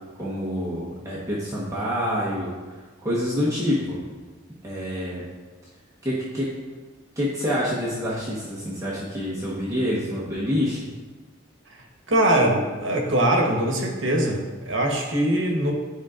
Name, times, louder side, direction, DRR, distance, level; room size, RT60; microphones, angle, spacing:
voice 1, 0.2-2.5 3.0-4.0 4.6-5.2 6.0-6.5 7.2-10.8, equal, 15° right, -8 dB, 1.1 m, -27 dB
voice 2, 12.1-15.7, right 1 dB, 70° right, 1 dB, 1.1 m, -22 dB
10.5 x 5.0 x 2.5 m, 1.3 s
head